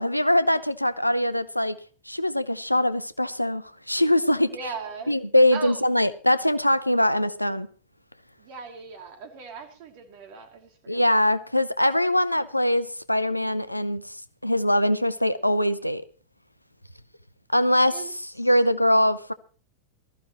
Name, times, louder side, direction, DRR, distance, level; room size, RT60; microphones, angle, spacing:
voice 1, 0.0-1.8 2.1-4.5 5.1-7.7 10.9-14.2 14.4-16.0 17.5-18.0 18.4-19.3, left 1 dB, 90° left, 0.7 m, -22 dB
voice 2, 4.4-5.2 5.5-5.8 8.4-11.1 17.9-18.1 18.4-18.5, right 5 dB, 45° right, 2.8 m, -39 dB
19.0 x 14.0 x 3.0 m
figure-of-eight pair, 90°, 0 cm